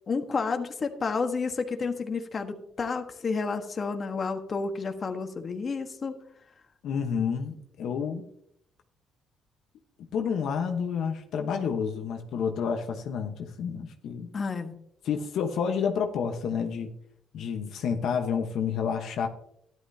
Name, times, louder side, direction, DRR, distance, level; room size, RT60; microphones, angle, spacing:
voice 1, 0.1-6.2 14.3-14.7, left 4 dB, 40° left, 1.3 m, -30 dB
voice 2, 6.8-8.3 10.1-14.3 15.0-16.9 17.3-19.3, left 6 dB, 75° left, 1.1 m, -29 dB
13.0 x 10.5 x 2.8 m
cardioid pair, 85°, 0 cm